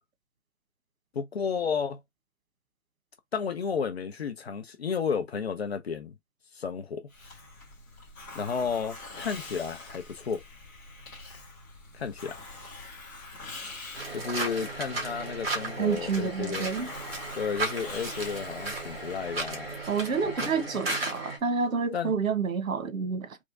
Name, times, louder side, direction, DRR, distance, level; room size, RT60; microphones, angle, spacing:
voice 1, 1.1-2.0 3.3-6.1 6.5-7.1 8.3-10.4 11.9-12.4 14.1-16.7 17.3-19.7 20.4-20.5 21.9-22.1, left 6 dB, 50° left, 0.7 m, -32 dB
Hiss, 7.1-20.6, left 2 dB, 15° left, 1.2 m, -45 dB
sound 1, 13.9-21.4, right 2 dB, 45° right, 1.8 m, -35 dB
voice 2, 15.8-16.9 19.9-23.4, right 5 dB, 85° right, 1.1 m, -29 dB
3.5 x 3.1 x 2.6 m
hypercardioid pair, 170°, 40 cm